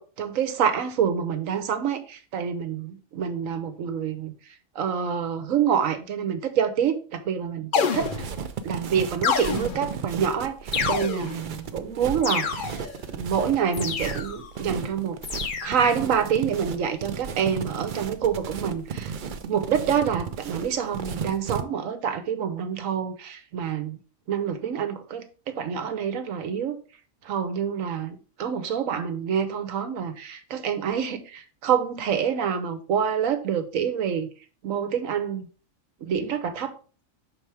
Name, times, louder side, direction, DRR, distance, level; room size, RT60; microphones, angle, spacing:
voice 1, 0.0-4.3 4.7-8.3 8.6-12.7 13.1-15.2 15.6-19.1 19.4-24.0 24.3-26.8 27.2-34.3 34.6-35.5 36.0-36.8, right 7 dB, 80° right, 1.2 m, -27 dB
sound 1, 7.7-8.5 9.2-10.0 10.7-11.5 12.2-13.0 13.7-14.5 15.2-15.9, left 6 dB, 50° left, 0.7 m, -28 dB
sound 2, 7.9-21.6, right 7 dB, 60° right, 0.5 m, -34 dB
5.7 x 4.2 x 4.7 m
omnidirectional pair, 1.4 m